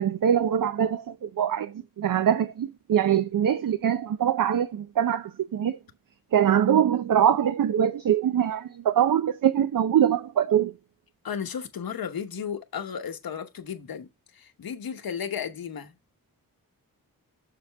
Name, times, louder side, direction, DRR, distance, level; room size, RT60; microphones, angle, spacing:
voice 1, 0.0-5.8 6.3-10.7, right 9 dB, 65° right, 0.6 m, -23 dB
voice 2, 11.2-14.1 14.3-15.9, left 7 dB, 85° left, 1.1 m, -34 dB
6.8 x 6.8 x 3.4 m
wide cardioid pair, 160°, 35 cm